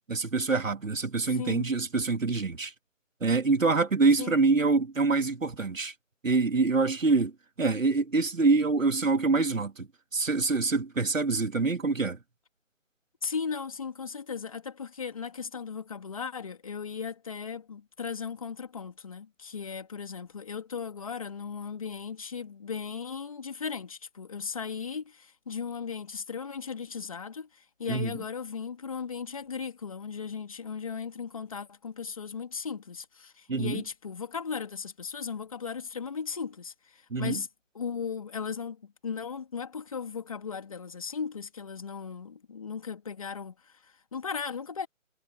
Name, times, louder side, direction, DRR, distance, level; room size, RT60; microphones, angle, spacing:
voice 1, 0.1-2.7 3.2-5.9 6.2-7.3 7.6-12.2 27.9-28.1 33.5-33.8 37.1-37.4, right 3 dB, 80° right, 3.0 m, -25 dB
voice 2, 1.3-1.7 4.2-4.4 13.2-37.5 37.7-44.9, left 6 dB, 25° left, 2.9 m, -37 dB
figure-of-eight pair, 175°, 39 cm